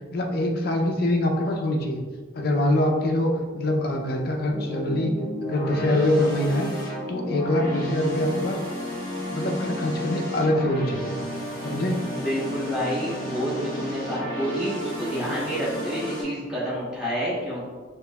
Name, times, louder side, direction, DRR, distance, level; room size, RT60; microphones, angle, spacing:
voice 1, 0.1-2.0 2.3-5.1 5.4-6.7 7.1-8.6 9.3-11.1 11.6-12.0, left 1 dB, 50° left, 1 dB, 0.5 m, -24 dB
sound 1, 4.5-16.2, equal, 20° left, 1.4 m, -32 dB
voice 2, 12.1-17.6, equal, 5° right, -10 dB, 1.4 m, -28 dB
5.1 x 2.9 x 2.3 m, 1.5 s
head